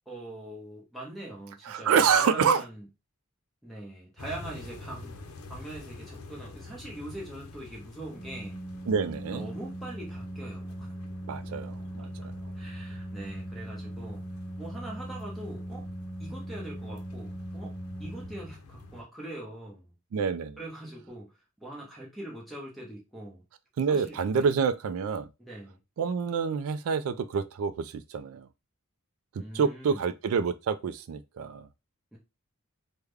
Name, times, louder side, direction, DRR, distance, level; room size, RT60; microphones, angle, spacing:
voice 1, 0.1-2.8 3.6-5.2 5.5-8.6 9.3-10.9 12.5-14.3 14.6-15.8 16.2-17.7 18.0-19.9 20.6-21.3 21.6-23.4 23.9-24.5 25.4-25.8 29.4-30.0 32.1-32.2, right 1 dB, ahead, 0.9 m, -42 dB
voice 2, 1.6-2.6 8.9-9.5 11.3-12.3 20.1-20.6 23.8-25.3 26.0-28.5 29.5-31.7, right 6 dB, 75° right, 0.3 m, -27 dB
sound 1, 4.2-19.0, left 2 dB, 80° left, 0.6 m, -48 dB
Organ, 8.1-18.9, right 1 dB, 40° left, 0.9 m, -40 dB
3.5 x 2.2 x 3.3 m
head